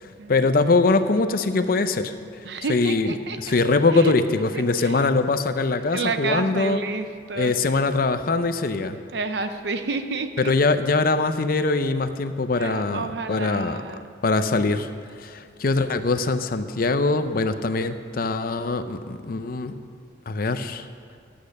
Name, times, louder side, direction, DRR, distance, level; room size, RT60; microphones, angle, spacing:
voice 1, 0.3-2.1 2.7-6.8 7.4-9.0 10.4-14.9 15.2-19.7 20.3-20.9, left 3 dB, 50° left, 10 dB, 0.6 m, -22 dB
voice 2, 2.4-3.6 3.9-4.1 4.5-5.1 5.9-7.6 9.1-10.5 12.6-14.1, right 3 dB, 60° right, 9 dB, 0.7 m, -30 dB
12.0 x 8.6 x 6.5 m, 2.2 s
head